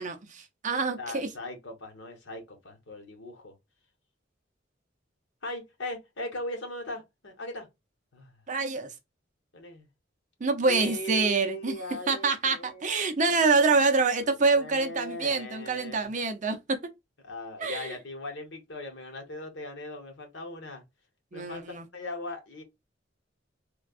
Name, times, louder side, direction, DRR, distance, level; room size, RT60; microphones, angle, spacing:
voice 1, 0.0-1.3 8.5-8.9 10.4-11.8 12.1-16.8 17.6-17.9 21.3-21.8, right 4 dB, 40° right, 0.6 m, -26 dB
voice 2, 1.0-3.5 5.4-7.7 8.1-8.3 9.5-9.9 10.6-13.4 14.3-16.1 17.2-20.8 21.3-21.6 21.9-22.6, left 1 dB, 70° left, 1.2 m, -39 dB
3.3 x 2.3 x 2.4 m
head